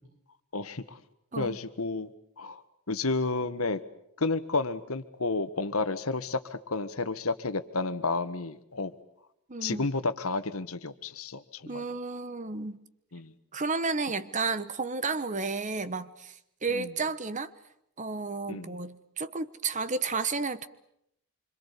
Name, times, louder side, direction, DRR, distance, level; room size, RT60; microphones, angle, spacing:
voice 1, 0.5-1.0 1.4-2.1 2.4-3.8 4.2-8.9 9.6-11.9 13.1-13.3 16.7-16.9 18.5-18.8, left 3 dB, 75° left, 1.5 m, -31 dB
voice 2, 9.5-9.9 11.7-12.8 13.5-17.5 18.0-20.7, right 4 dB, 35° right, 1.1 m, -32 dB
26.0 x 26.0 x 8.4 m
head